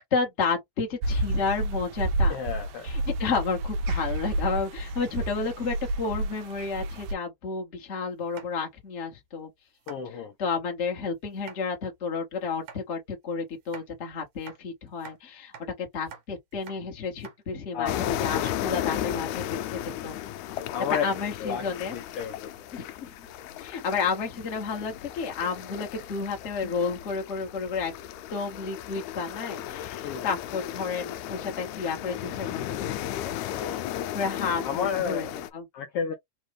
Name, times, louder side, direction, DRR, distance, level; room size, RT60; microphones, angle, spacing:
voice 1, 0.1-2.4 2.8-9.5 10.1-20.2 20.9-21.9 22.7-23.3 23.6-27.9 28.3-33.4 34.1-35.6, left 5 dB, 35° left, 1.2 m, -31 dB
sound 1, 1.0-7.1, right 1 dB, 90° right, 2.2 m, -29 dB
voice 2, 2.3-2.9 9.9-10.3 17.7-18.0 20.7-21.0 21.4-22.5 30.0-30.3 33.5-33.9 34.6-35.4 35.7-36.1, left 7 dB, 70° left, 1.4 m, -32 dB
sound 2, 8.2-8.8 9.3-9.4 9.7-10.0 11.3-11.6 12.5-12.8 13.6-13.9 14.4-15.2 15.5-15.7 15.9-16.2 16.5-16.8 17.1-17.4 17.7-17.8 18.4-19.7, right 7 dB, 65° right, 2.1 m, -47 dB
sound 3, 17.9-35.5, left 12 dB, 90° left, 2.0 m, -35 dB
5.1 x 2.5 x 3.2 m
omnidirectional pair, 3.3 m